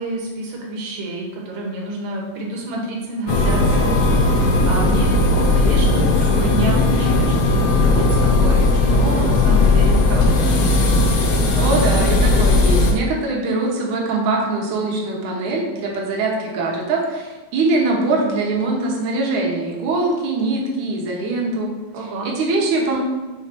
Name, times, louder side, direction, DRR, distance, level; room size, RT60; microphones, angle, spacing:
voice 1, 0.0-10.9 21.9-22.3, right 1 dB, 85° right, -2 dB, 2.9 m, -28 dB
sound 1, 3.3-12.9, left 2 dB, 65° left, 1.5 m, -16 dB
voice 2, 11.5-21.7 22.2-23.0, right 3 dB, 70° right, -2 dB, 2.4 m, -22 dB
6.4 x 3.9 x 6.0 m, 1.2 s
omnidirectional pair, 3.8 m